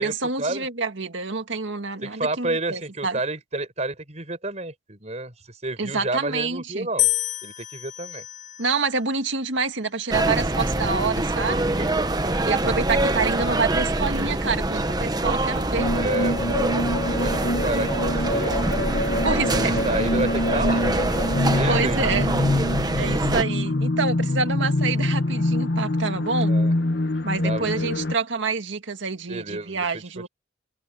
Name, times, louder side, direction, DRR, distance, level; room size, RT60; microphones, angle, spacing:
voice 1, 0.0-3.2 5.8-6.9 8.6-11.6 12.4-15.9 19.2-19.8 21.7-22.4 23.0-26.5 27.2-30.3, right 4 dB, 75° right, 1.9 m, -27 dB
voice 2, 2.0-7.1 7.4-8.2 11.4-13.2 15.9-16.5 17.2-18.6 19.3-21.0 21.5-22.0 26.5-26.7 27.4-28.0 29.3-30.0, right 2 dB, 35° right, 5.2 m, -30 dB
sound 1, 7.0-9.2 10.0-10.5, left 18 dB, 40° left, 7.1 m, -29 dB
sound 2, 10.1-23.4, right 2 dB, 20° right, 1.0 m, -25 dB
sound 3, 15.8-28.1, left 1 dB, 55° left, 1.4 m, -25 dB
head